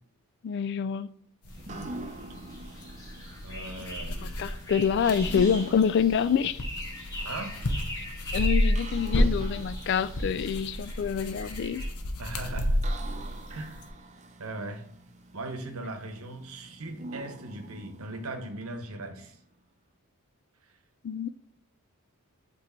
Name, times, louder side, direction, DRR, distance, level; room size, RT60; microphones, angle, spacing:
voice 1, 0.4-1.1 4.2-6.6 8.0-8.1 8.3-11.8 21.0-21.3, left 7 dB, 50° left, 0.3 m, -26 dB
sound 1, 1.4-13.9, equal, 85° left, 0.8 m, -31 dB
sound 2, 1.4-19.3, right 2 dB, 30° right, 0.6 m, -46 dB
sound 3, 1.5-11.9, left 1 dB, 15° left, 1.3 m, -42 dB
voice 2, 3.4-4.5 7.2-7.6 12.2-12.8 13.5-13.8 14.4-14.8 15.3-19.4, right 2 dB, 75° right, 1.0 m, -39 dB
8.2 x 3.2 x 4.4 m
head